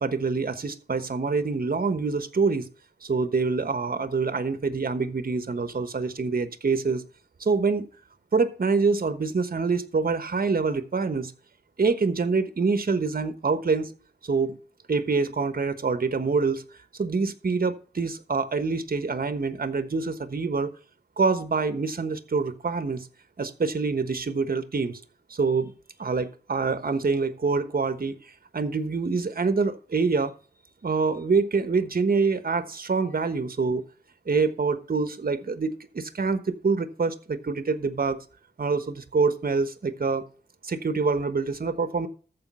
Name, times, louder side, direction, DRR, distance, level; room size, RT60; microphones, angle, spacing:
voice 1, 0.0-2.7 3.0-7.0 7.4-7.9 8.3-11.3 11.8-13.9 14.2-14.6 14.9-16.6 17.0-20.7 21.2-23.1 23.4-25.0 25.3-25.7 26.0-28.2 28.5-30.3 30.8-33.8 34.3-38.2 38.6-40.2 40.6-42.1, right 4 dB, 60° right, 1.2 m, -26 dB
14.0 x 5.0 x 5.5 m
wide cardioid pair, 70°, 17 cm